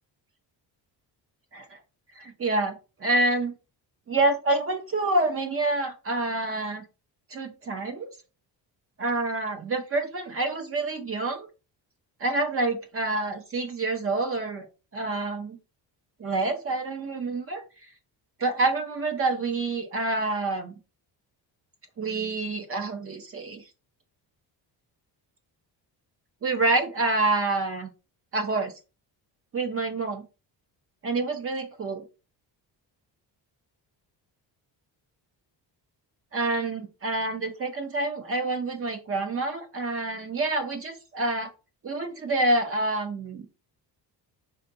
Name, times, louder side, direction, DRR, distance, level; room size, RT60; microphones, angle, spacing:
voice 1, 2.2-3.5 4.1-6.8 7.3-8.1 9.0-11.5 12.2-14.7 14.9-15.6 16.2-17.6 18.4-20.7 22.0-23.6 26.4-27.9 28.3-28.7 29.5-30.2 31.0-32.0 36.3-41.5 41.8-43.5, right 2 dB, 35° right, 6 dB, 0.6 m, -27 dB
4.4 x 2.7 x 2.6 m, 0.30 s
cardioid pair, 170°, 43 cm